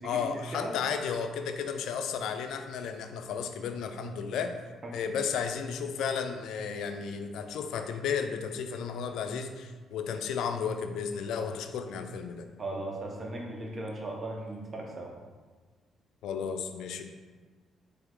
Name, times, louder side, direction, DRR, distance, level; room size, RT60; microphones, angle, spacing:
voice 1, 0.0-4.5 4.9-12.4 16.2-17.0, left 6 dB, 80° left, 7 dB, 0.3 m, -33 dB
voice 2, 12.6-15.1, right 2 dB, 30° right, -1 dB, 0.8 m, -37 dB
3.4 x 2.9 x 3.7 m, 1.4 s
cardioid pair, 90°, 0 cm